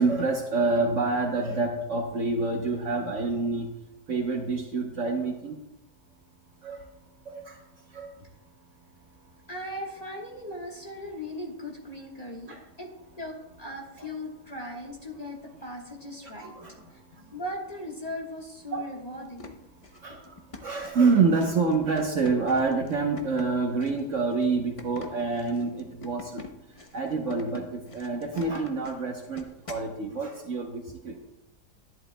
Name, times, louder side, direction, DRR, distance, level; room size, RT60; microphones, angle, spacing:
voice 1, 0.0-3.7 4.1-5.6 6.6-6.8 7.3-7.6 7.9-8.1 12.5-12.6 16.4-16.8 18.7-18.8 20.0-26.4 26.9-31.2, right 4 dB, 55° right, 2 dB, 1.1 m, -27 dB
voice 2, 9.5-12.9 13.2-19.6 20.1-20.2, left 1 dB, 25° left, -2 dB, 1.3 m, -38 dB
sound 1, 19.2-29.9, left 3 dB, 50° left, 0.4 m, -45 dB
11.0 x 11.0 x 2.2 m, 0.90 s
omnidirectional pair, 1.8 m